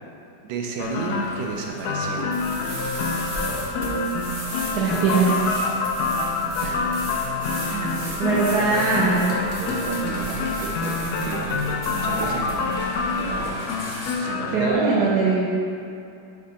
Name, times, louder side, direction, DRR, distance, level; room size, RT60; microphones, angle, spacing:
voice 1, 0.4-2.3 6.6-7.0 7.7-13.8 14.2-15.2, right 4 dB, 80° right, 1 dB, 1.4 m, -32 dB
sound 1, 0.7-5.3 6.0-8.3 8.6-14.1, left 1 dB, 45° left, 1.1 m, -40 dB
sound 2, 0.8-14.7, left 3 dB, 80° left, 0.9 m, -27 dB
sound 3, 2.3-13.5, right 1 dB, 40° right, 0.9 m, -36 dB
voice 2, 4.7-5.3 8.2-9.4 14.5-15.4, right 4 dB, 65° right, -6 dB, 1.1 m, -21 dB
5.0 x 4.7 x 4.1 m, 2.6 s
omnidirectional pair, 2.2 m